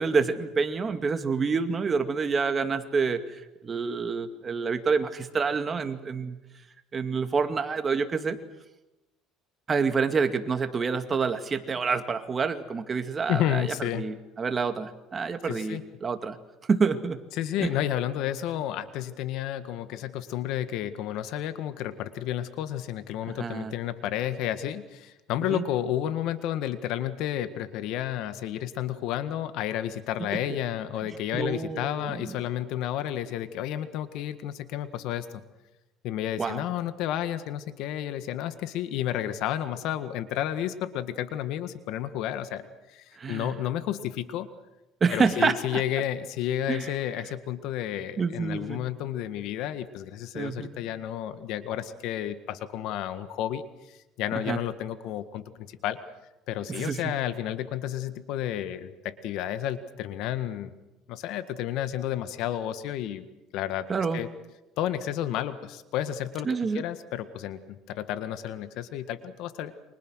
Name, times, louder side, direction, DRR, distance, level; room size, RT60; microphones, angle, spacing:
voice 1, 0.0-3.4 3.6-6.4 6.9-8.4 9.7-16.4 16.7-17.2 17.6-17.7 23.3-23.7 25.5-25.6 31.3-32.3 36.4-36.7 43.2-43.5 45.0-45.8 46.7-46.9 48.2-48.8 50.3-50.7 54.5-54.6 56.7-57.1 63.9-64.2 66.4-66.8, right 5 dB, 30° right, 7 dB, 2.2 m, -27 dB
voice 2, 13.3-14.0 15.5-15.8 17.3-35.4 36.0-44.5 45.1-56.0 56.5-60.7 61.1-63.2 63.5-63.9 64.1-64.3 64.8-66.5 66.7-69.7, left 11 dB, 70° left, 11 dB, 1.8 m, -31 dB
29.5 x 25.0 x 6.4 m, 0.99 s
cardioid pair, 120°, 0 cm